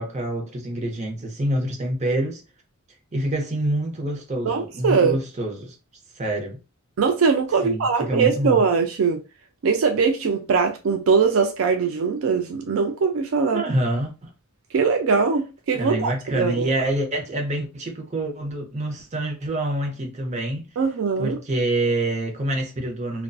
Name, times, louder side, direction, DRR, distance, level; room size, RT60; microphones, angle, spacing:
voice 1, 0.0-2.4 3.1-5.7 6.2-6.6 7.6-8.6 13.5-14.3 15.8-20.6 21.2-23.2, right 1 dB, 30° right, 0.6 m, -26 dB
voice 2, 4.4-5.2 7.0-9.2 9.6-13.6 14.7-16.7 20.8-21.4, right 5 dB, 70° right, 0.4 m, -21 dB
2.5 x 2.2 x 2.3 m
head